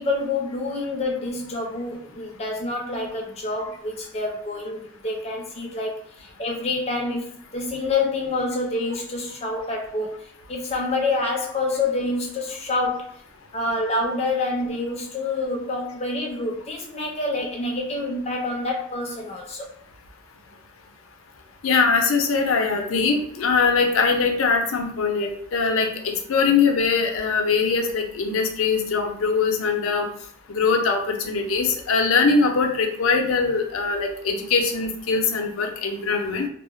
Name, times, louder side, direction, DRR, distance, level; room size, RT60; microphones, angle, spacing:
voice 1, 0.0-10.1 10.5-13.1 13.5-19.7, left 2 dB, 30° left, 0 dB, 0.5 m, -27 dB
voice 2, 21.6-30.1 30.5-36.5, left 4 dB, 90° left, 3 dB, 0.5 m, -22 dB
2.3 x 2.0 x 3.0 m, 0.64 s
head